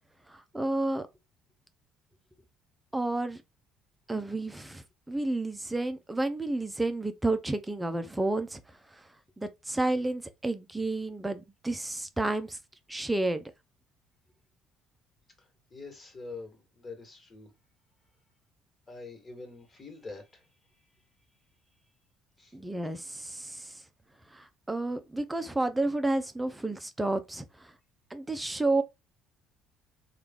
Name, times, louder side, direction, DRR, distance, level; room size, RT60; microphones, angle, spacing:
voice 1, 0.3-1.1 2.9-3.4 4.1-8.6 9.4-12.6 12.9-13.4 22.5-23.8 24.3-27.7 28.1-28.8, right 2 dB, 10° right, 0.6 m, -31 dB
voice 2, 15.4-17.5 18.9-20.5 22.4-22.6, left 3 dB, 30° left, 1.7 m, -45 dB
3.2 x 2.5 x 3.7 m
supercardioid pair, 75°, 0 cm